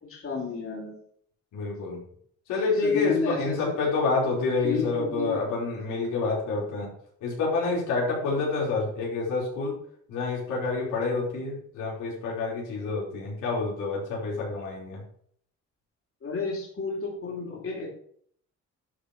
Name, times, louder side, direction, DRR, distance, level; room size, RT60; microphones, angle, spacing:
voice 1, 0.0-0.9 2.8-3.6 4.6-5.4 16.2-17.9, left 5 dB, 45° left, -3 dB, 4.0 m, -31 dB
voice 2, 1.5-2.0 2.5-6.9 7.2-9.7 10.1-15.0, left 3 dB, 90° left, -4 dB, 4.7 m, -28 dB
11.5 x 5.1 x 6.1 m, 0.62 s
cardioid pair, 90°, 30 cm